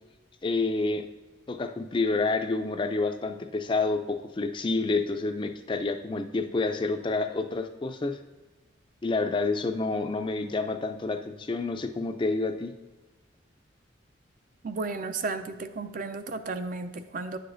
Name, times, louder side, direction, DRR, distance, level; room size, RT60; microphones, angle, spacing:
voice 1, 0.4-1.1 1.5-8.2 9.0-12.7, left 3 dB, 25° left, 7 dB, 0.4 m, -28 dB
voice 2, 14.6-17.4, right 3 dB, 45° right, 9 dB, 0.4 m, -33 dB
9.5 x 6.7 x 2.6 m, 1.2 s
head